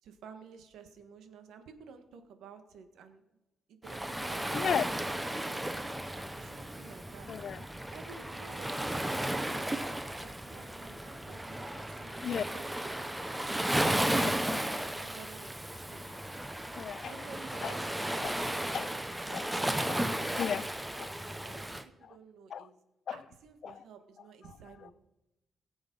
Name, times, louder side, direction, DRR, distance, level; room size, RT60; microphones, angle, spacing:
voice 1, 0.0-3.4 3.7-7.3 7.9-16.0 17.1-19.0 19.2-19.7 20.2-21.1 21.4-22.8 23.1-24.9, right 6 dB, 80° right, 1.5 m, -53 dB
Waves surf, 3.8-21.8, right 1 dB, 5° right, 0.6 m, -34 dB
voice 2, 4.5-4.9 7.3-7.6 12.2-12.4 14.2-14.3 16.7-17.1 17.6-17.7 18.2-18.4 18.7-18.9 19.3-19.5 20.4-20.7 21.0-21.1 22.5-22.7 23.1-23.2 23.6-23.7, left 8 dB, 50° left, 0.4 m, -33 dB
21.0 x 7.1 x 5.5 m
cardioid pair, 160°, 0 cm